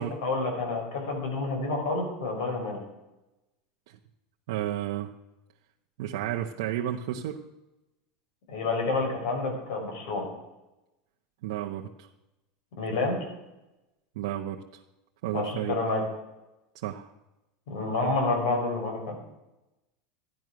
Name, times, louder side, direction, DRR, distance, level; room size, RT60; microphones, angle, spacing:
voice 1, 0.0-2.8 8.5-10.3 12.8-13.2 15.3-16.0 17.7-19.2, left 3 dB, 75° left, 2 dB, 5.8 m, -29 dB
voice 2, 4.5-5.1 6.0-7.4 11.4-12.1 14.2-14.6 15.2-15.8 16.8-17.1, right 11 dB, 65° right, 0 dB, 1.0 m, -32 dB
14.0 x 11.0 x 6.3 m, 0.97 s
supercardioid pair, 180°, 3 cm